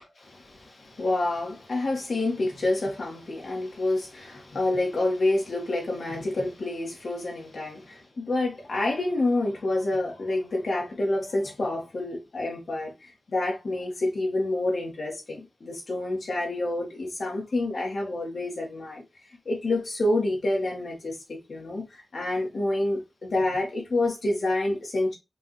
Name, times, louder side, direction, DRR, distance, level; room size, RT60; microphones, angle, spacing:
voice 1, 0.2-19.0 19.5-21.2 21.5-25.2, left 2 dB, 70° left, 1.8 m, -28 dB
5.2 x 2.7 x 3.2 m
wide cardioid pair, 115°, 0 cm